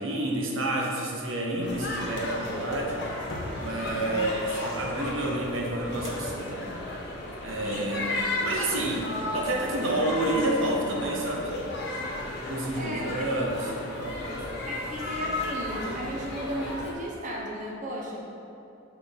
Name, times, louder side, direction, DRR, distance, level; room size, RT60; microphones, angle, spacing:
voice 1, 0.0-3.0 3.6-6.7 7.4-8.1 8.4-11.5 12.5-13.7 14.0-14.2, right 1 dB, 75° right, -1 dB, 1.0 m, -29 dB
sound 1, 1.6-16.9, left 1 dB, 55° left, 1.3 m, -34 dB
voice 2, 3.9-4.3 7.6-8.4 12.8-13.3 14.6-18.2, equal, 40° right, -3 dB, 0.8 m, -36 dB
6.0 x 4.0 x 6.2 m, 2.9 s
head